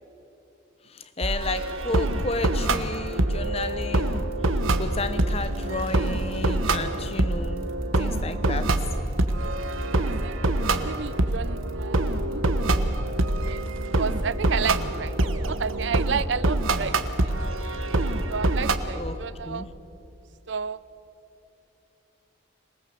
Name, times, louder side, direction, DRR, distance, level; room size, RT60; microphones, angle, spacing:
voice 1, 1.2-4.3 4.8-7.7 8.0-8.7 18.9-19.7, left 3 dB, 30° left, 11 dB, 0.9 m, -32 dB
sound 1, 1.2-18.7, right 2 dB, 90° right, 1.3 m, -25 dB
voice 2, 10.0-10.4 10.8-12.0 12.3-12.4 13.4-13.6 14.0-15.1 15.5-16.9 17.2-17.3 18.3-19.7 20.5-20.8, right 6 dB, 60° right, 18 dB, 0.5 m, -31 dB
26.0 x 19.0 x 7.6 m, 3.0 s
head